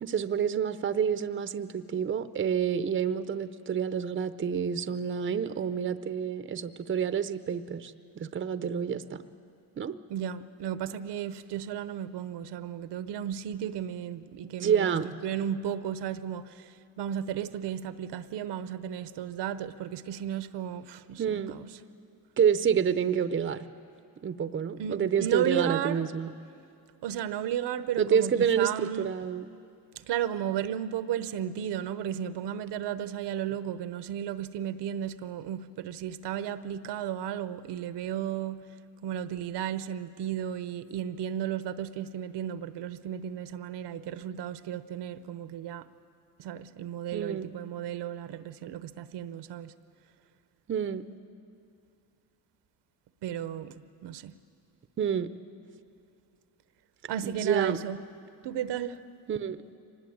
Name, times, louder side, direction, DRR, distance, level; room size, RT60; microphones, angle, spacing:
voice 1, 0.0-9.2 9.8-10.0 14.6-15.1 21.2-21.6 22.4-23.7 24.2-26.3 28.0-29.4 47.1-47.5 50.7-51.0 55.0-55.3 57.2-57.8 59.3-59.6, right 7 dB, 30° right, 0.7 m, -28 dB
voice 2, 10.1-15.0 15.2-21.7 24.8-26.0 27.0-29.1 29.9-38.6 39.0-45.9 46.4-49.7 53.2-54.3 57.1-58.0 58.4-59.0, right 10 dB, 70° right, 0.9 m, -34 dB
24.0 x 19.5 x 8.7 m
cardioid pair, 115°, 43 cm